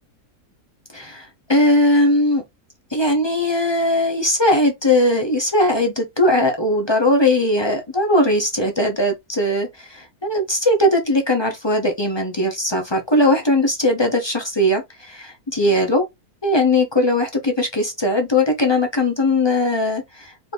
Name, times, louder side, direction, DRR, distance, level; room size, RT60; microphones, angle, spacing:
voice 1, 0.9-2.4 2.9-16.0 16.4-20.5, left 1 dB, 30° left, 0.5 m, -19 dB
4.7 x 2.6 x 3.4 m
omnidirectional pair, 1.7 m